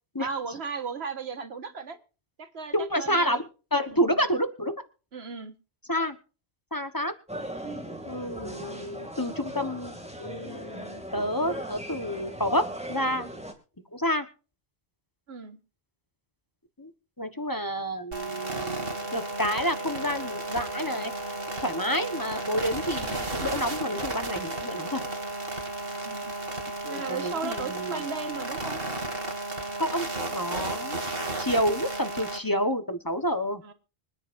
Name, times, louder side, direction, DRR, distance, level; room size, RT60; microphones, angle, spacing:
voice 1, 0.2-2.0 2.4-3.4 3.9-4.2 5.1-5.6 15.3-15.6 26.0-26.3 26.8-28.8 33.6-33.7, right 5 dB, 85° right, 9 dB, 1.7 m, -36 dB
voice 2, 2.7-3.4 3.7-4.7 5.9-6.2 6.7-7.1 8.0-13.3 13.9-14.3 16.8-16.9 17.2-21.1 21.6-25.0 26.8-27.9 29.8-33.6, equal, 20° left, 9 dB, 1.2 m, -29 dB
sound 1, 7.3-13.5, right 1 dB, 5° right, 2.4 m, -38 dB
sound 2, 18.1-32.4, right 2 dB, 65° right, 2.5 m, -33 dB
Brass instrument, 18.4-25.4, left 1 dB, 65° left, 4.9 m, -45 dB
25.0 x 10.0 x 2.6 m, 0.35 s
omnidirectional pair, 1.1 m